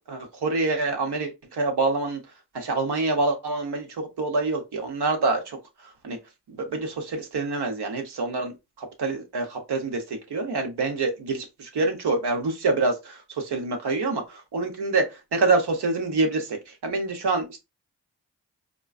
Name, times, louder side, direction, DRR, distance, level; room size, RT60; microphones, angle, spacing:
voice 1, 0.1-2.2 2.5-5.6 6.0-6.2 6.5-17.6, right 3 dB, 75° right, 0.9 m, -26 dB
3.7 x 2.3 x 2.3 m
cardioid pair, 40°, 40 cm